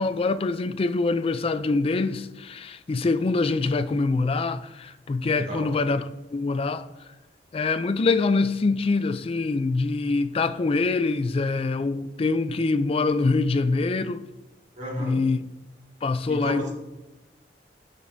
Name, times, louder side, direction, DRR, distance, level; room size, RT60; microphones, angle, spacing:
voice 1, 0.0-6.9 7.5-14.2 15.0-15.4 16.0-16.7, left 3 dB, 35° left, 0.3 m, -24 dB
voice 2, 5.3-5.7 14.8-15.2 16.3-16.7, equal, 40° right, 2.1 m, -32 dB
10.0 x 6.7 x 2.6 m
head